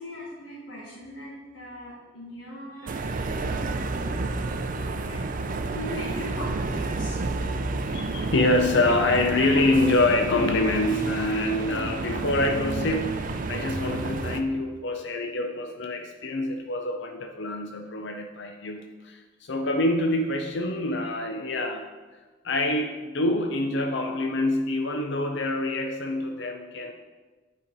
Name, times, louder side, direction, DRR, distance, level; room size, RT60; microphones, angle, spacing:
voice 1, 0.0-7.2, equal, 85° left, -5 dB, 1.5 m, -40 dB
sound 1, 2.9-14.4, right 3 dB, 45° right, 0.5 m, -30 dB
voice 2, 7.9-21.9 22.4-26.9, left 2 dB, 65° left, 4 dB, 0.6 m, -26 dB
8.7 x 4.4 x 5.3 m, 1.3 s
head